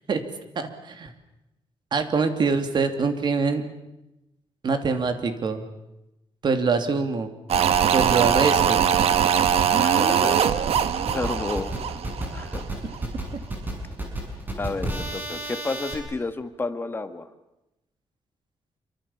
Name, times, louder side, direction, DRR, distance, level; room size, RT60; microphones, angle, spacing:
voice 1, 0.5-1.1 1.9-3.6 4.6-5.6 6.4-7.3 7.9-8.8 13.3-13.4, right 4 dB, 45° right, 7 dB, 2.8 m, -24 dB
sound 1, 7.5-12.7 12.9-13.0, right 8 dB, 70° right, 1.4 m, -22 dB
voice 2, 9.8-10.7 11.1-11.7 12.3-12.6 14.6-17.3, left 3 dB, 20° left, 8 dB, 1.7 m, -31 dB
sound 2, 10.7-15.9, right 1 dB, 15° right, 6.9 m, -32 dB
27.0 x 24.5 x 7.3 m, 0.93 s
wide cardioid pair, 150°, 11 cm